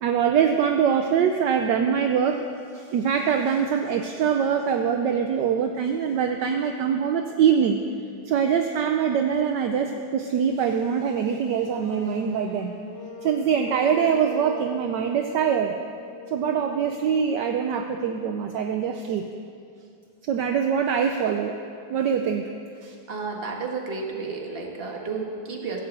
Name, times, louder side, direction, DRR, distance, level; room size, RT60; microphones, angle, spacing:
voice 1, 0.0-2.5 2.7-7.8 8.3-12.7 13.2-15.8 16.3-19.3 20.2-21.6 21.9-22.5 22.8-22.9, right 7 dB, 70° right, 5 dB, 1.1 m, -23 dB
sound 1, 11.7-17.6, left 3 dB, 50° left, 2.8 m, -40 dB
voice 2, 23.1-25.8, right 4 dB, 30° right, 0 dB, 1.6 m, -32 dB
16.0 x 7.8 x 8.0 m, 2.4 s
omnidirectional pair, 2.4 m